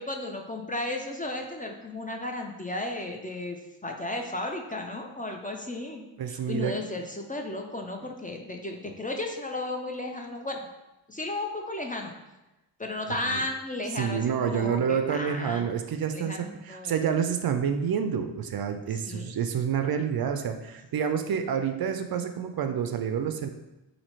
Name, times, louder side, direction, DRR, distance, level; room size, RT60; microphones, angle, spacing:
voice 1, 0.0-6.0 6.3-10.7 11.1-12.1 12.8-15.7 16.1-16.9 19.1-19.3, left 2 dB, 20° left, 3 dB, 0.5 m, -34 dB
voice 2, 6.2-6.7 13.2-13.4 13.9-23.5, right 7 dB, 50° right, 7 dB, 0.5 m, -28 dB
2.8 x 2.8 x 4.3 m, 0.99 s
cardioid pair, 45°, 47 cm